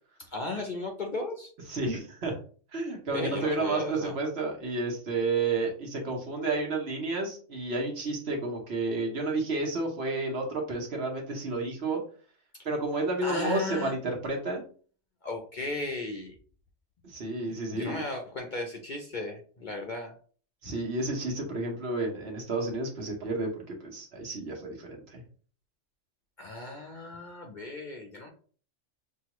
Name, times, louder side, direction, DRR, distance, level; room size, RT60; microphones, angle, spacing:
voice 1, 0.2-1.5 3.1-4.2 13.2-13.9 15.2-16.3 17.7-20.1 26.4-28.3, left 2 dB, 45° left, 3 dB, 0.7 m, -35 dB
voice 2, 1.7-2.3 2.7-12.0 12.6-14.6 17.0-18.0 20.6-25.2, right 3 dB, 55° right, 1 dB, 1.3 m, -31 dB
6.0 x 2.4 x 2.9 m, 0.43 s
omnidirectional pair, 1.3 m